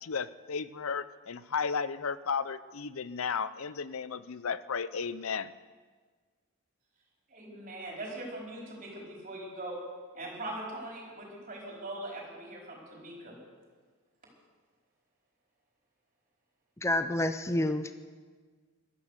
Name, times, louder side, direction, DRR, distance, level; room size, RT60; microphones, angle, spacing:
voice 1, 0.0-5.5, left 5 dB, 75° left, 16 dB, 0.6 m, -34 dB
voice 2, 7.3-9.8 10.1-13.4, right 1 dB, 40° right, -2 dB, 4.8 m, -41 dB
voice 3, 16.8-17.9, left 1 dB, 15° left, 10 dB, 0.5 m, -28 dB
15.5 x 12.5 x 6.6 m, 1.5 s
head